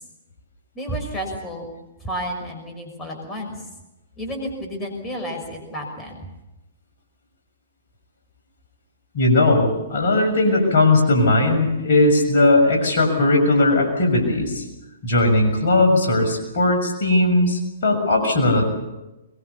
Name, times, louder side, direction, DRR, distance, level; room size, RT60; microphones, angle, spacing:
voice 1, 0.7-1.7 2.0-3.6 4.2-6.3, equal, 15° left, 2 dB, 5.9 m, -31 dB
voice 2, 9.1-14.7 15.0-18.7, left 2 dB, 55° left, 2 dB, 6.7 m, -18 dB
22.5 x 22.0 x 7.1 m, 1.0 s
figure-of-eight pair, 115°, 0 cm